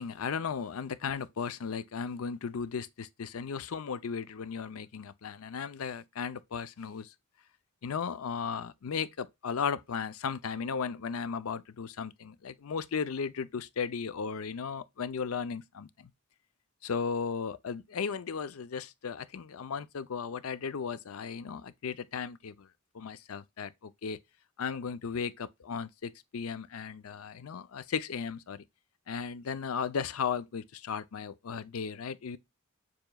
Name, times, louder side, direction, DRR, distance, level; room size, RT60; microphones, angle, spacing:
voice 1, 0.0-7.1 7.8-16.1 16.8-22.7 22.9-24.2 24.6-28.6 29.1-32.4, left 6 dB, 85° left, 0.5 m, -36 dB
6.8 x 3.0 x 2.2 m
head